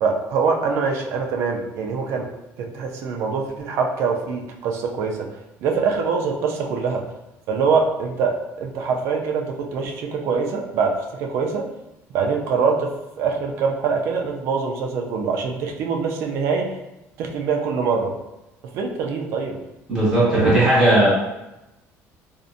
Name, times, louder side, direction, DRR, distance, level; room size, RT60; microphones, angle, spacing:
voice 1, 0.0-2.3 2.6-5.3 5.6-7.1 7.5-11.7 12.1-16.7 17.2-18.2 18.7-19.6 20.4-20.6, right 5 dB, 55° right, 2 dB, 0.4 m, -24 dB
voice 2, 19.9-21.1, right 1 dB, 10° right, -9 dB, 1.1 m, -16 dB
2.5 x 2.1 x 2.5 m, 0.95 s
cardioid pair, 170°, 5 cm